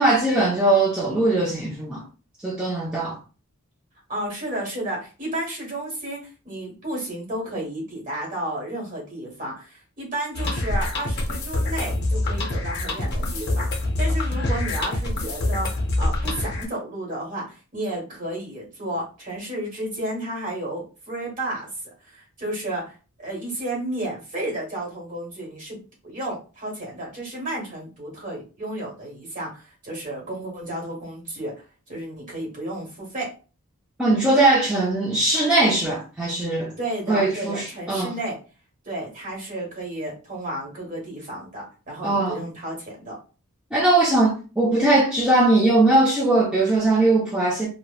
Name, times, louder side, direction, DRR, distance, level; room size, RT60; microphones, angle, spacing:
voice 1, 0.0-2.0 2.4-3.2 34.0-36.7 37.1-38.1 42.0-42.4 43.7-47.7, right 2 dB, 5° right, 0.4 m, -20 dB
voice 2, 4.1-21.7 22.0-31.5 31.9-33.3 36.8-38.4 38.8-43.2, right 1 dB, 35° right, 1.2 m, -32 dB
sound 1, 10.3-16.6, left 1 dB, 50° left, 0.6 m, -25 dB
2.9 x 2.0 x 2.2 m
head